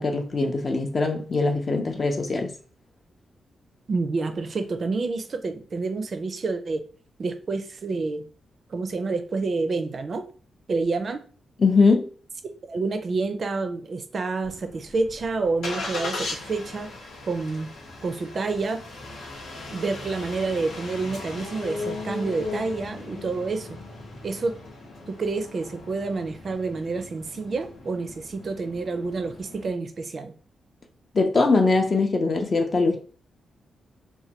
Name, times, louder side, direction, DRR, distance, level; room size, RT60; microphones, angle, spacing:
voice 1, 0.0-2.5 11.6-12.1 31.1-33.0, left 3 dB, 40° left, 0.5 m, -21 dB
voice 2, 3.9-6.8 7.2-8.3 8.7-10.3 10.7-11.2 12.7-16.9 17.3-17.7 18.0-18.8 19.7-23.7 24.2-24.6 25.1-30.3, right 3 dB, 45° right, 0.4 m, -28 dB
Engine starting, 14.4-29.7, left 2 dB, 80° left, 0.9 m, -38 dB
3.1 x 2.1 x 2.8 m
cardioid pair, 105°, 0 cm